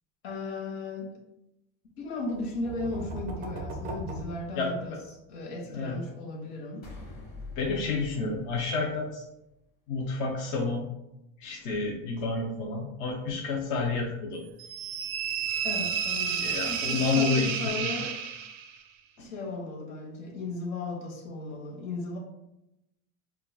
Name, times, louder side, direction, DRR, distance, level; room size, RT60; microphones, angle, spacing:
voice 1, 0.2-1.2 2.0-5.0 5.3-6.9 15.6-18.2 19.2-22.2, left 2 dB, 80° left, -1 dB, 1.1 m, -36 dB
sound 1, 2.3-5.2, right 2 dB, 25° right, 0.4 m, -38 dB
sound 2, 6.8-9.4, left 3 dB, 25° left, 1.3 m, -45 dB
voice 2, 7.6-9.3 9.9-10.9 11.4-14.4 16.4-17.9 19.2-19.3, left 4 dB, 55° left, -2 dB, 0.7 m, -30 dB
sound 3, 14.6-18.8, right 7 dB, 90° right, 0.5 m, -31 dB
5.4 x 2.3 x 2.3 m, 0.89 s
cardioid pair, 145°, 38 cm